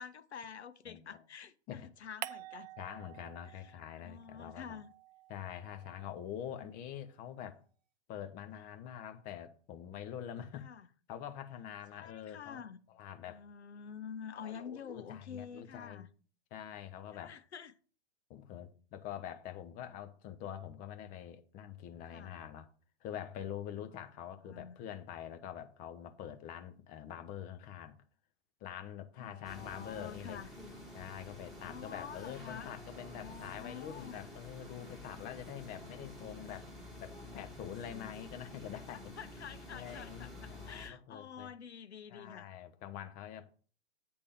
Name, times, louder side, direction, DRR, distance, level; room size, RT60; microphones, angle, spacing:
voice 1, 0.0-2.7 3.5-4.9 6.6-6.7 10.6-10.9 11.9-12.8 13.3-16.1 17.1-17.7 22.1-22.3 23.8-23.9 24.4-24.8 29.2-30.5 31.6-32.8 33.1-34.2 39.2-42.5, left 7 dB, 75° left, 0.7 m, -48 dB
voice 2, 0.9-1.2 1.7-1.9 2.8-4.8 5.3-7.6 8.1-10.7 11.1-12.6 12.9-13.4 14.3-16.1 16.5-17.3 18.3-22.7 23.0-28.0 28.6-30.4 30.9-36.7 37.0-39.0 39.7-41.5 42.1-43.5, left 10 dB, 25° left, 0.7 m, -45 dB
sound 1, 2.2-3.9 4.2-6.6, right 12 dB, 40° right, 0.5 m, -49 dB
sound 2, 29.4-40.9, left 1 dB, ahead, 1.6 m, -50 dB
8.6 x 3.5 x 6.7 m
figure-of-eight pair, 110°, 33 cm